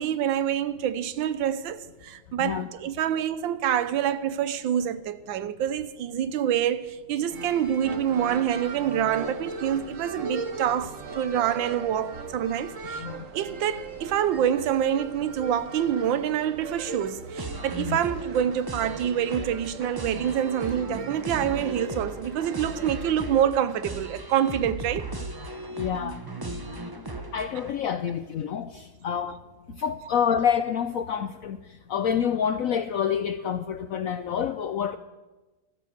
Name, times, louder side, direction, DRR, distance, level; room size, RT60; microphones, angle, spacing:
voice 1, 0.0-13.0 13.3-25.1, right 9 dB, 85° right, 1.5 m, -26 dB
voice 2, 2.4-2.7 13.0-13.2 17.9-18.0 25.8-26.2 27.3-29.4 29.7-31.6 31.9-35.0, left 8 dB, 75° left, 0.7 m, -27 dB
sound 1, 7.3-23.5, right 4 dB, 50° right, 1.3 m, -39 dB
sound 2, 17.4-27.7, right 2 dB, 20° right, 0.7 m, -37 dB
13.0 x 12.5 x 6.7 m
omnidirectional pair, 2.0 m